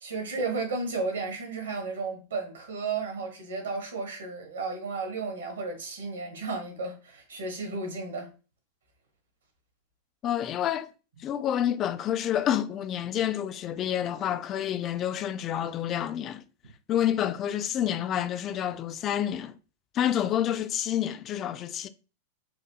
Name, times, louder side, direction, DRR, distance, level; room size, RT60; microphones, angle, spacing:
voice 1, 0.0-8.3, right 3 dB, 70° right, 1.3 m, -33 dB
voice 2, 10.2-10.9 11.2-16.4 16.9-19.6 19.9-21.9, left 10 dB, 30° left, 0.3 m, -28 dB
4.1 x 2.6 x 2.8 m
figure-of-eight pair, 90°, 0 cm